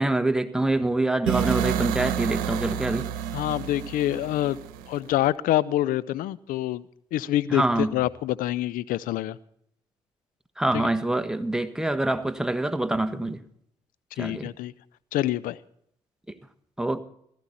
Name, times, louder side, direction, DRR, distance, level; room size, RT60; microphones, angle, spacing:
voice 1, 0.0-3.1 7.5-8.0 10.6-13.4 14.2-14.5 16.3-16.4 16.8-17.0, right 2 dB, 5° right, 1.4 m, -25 dB
sound 1, 1.3-5.2, right 10 dB, 80° right, 1.0 m, -29 dB
voice 2, 3.3-4.6 4.9-6.8 7.1-9.4 10.7-10.9 14.2-14.7 15.1-15.6, left 14 dB, 75° left, 0.6 m, -26 dB
16.0 x 14.0 x 4.2 m
hypercardioid pair, 50°, 14 cm